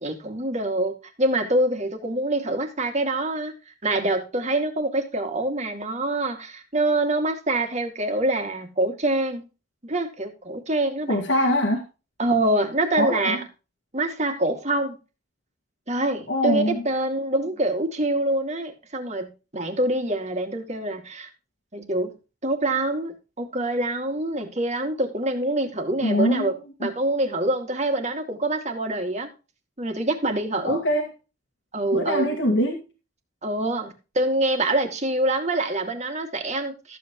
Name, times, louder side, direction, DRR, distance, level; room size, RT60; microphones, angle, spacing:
voice 1, 0.0-3.5 3.8-9.4 9.8-11.2 12.2-13.4 13.9-15.0 15.9-21.3 21.7-22.1 22.4-26.5 26.8-29.3 29.8-30.8 31.7-32.4 33.4-37.0, right 1 dB, 40° right, 2.3 m, -25 dB
voice 2, 11.1-11.8 12.9-13.4 16.3-16.8 26.0-26.5 30.6-31.1 31.9-32.8, left 1 dB, 85° left, 2.0 m, -23 dB
14.0 x 8.1 x 3.1 m
head